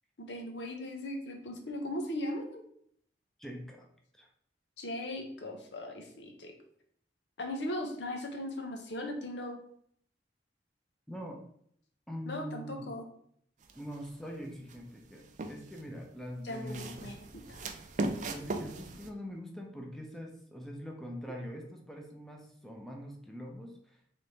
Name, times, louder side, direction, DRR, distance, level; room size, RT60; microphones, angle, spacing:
voice 1, 0.2-2.6 4.8-6.5 7.4-9.6 12.3-13.1 16.4-17.2 17.5-17.7, left 1 dB, 80° left, 4 dB, 0.8 m, -38 dB
voice 2, 3.4-3.9 4.1-4.3 11.1-11.4 12.1-12.8 13.7-17.0 18.2-24.0, equal, ahead, 0 dB, 0.6 m, -43 dB
sound 1, 13.6-14.1 14.7-15.9 16.5-19.1, right 2 dB, 45° right, 0.4 m, -38 dB
3.4 x 3.3 x 4.0 m, 0.65 s
head